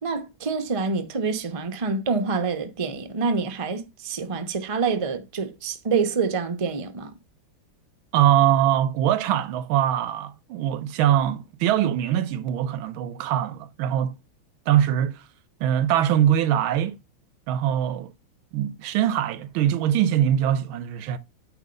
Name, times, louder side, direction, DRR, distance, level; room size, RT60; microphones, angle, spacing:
voice 1, 0.0-7.1, right 4 dB, 40° right, 0.4 m, -26 dB
voice 2, 8.1-14.1 14.7-15.2 15.6-17.0 17.5-18.1 18.5-21.2, right 11 dB, 90° right, 1.5 m, -22 dB
9.0 x 3.1 x 5.1 m
omnidirectional pair, 2.2 m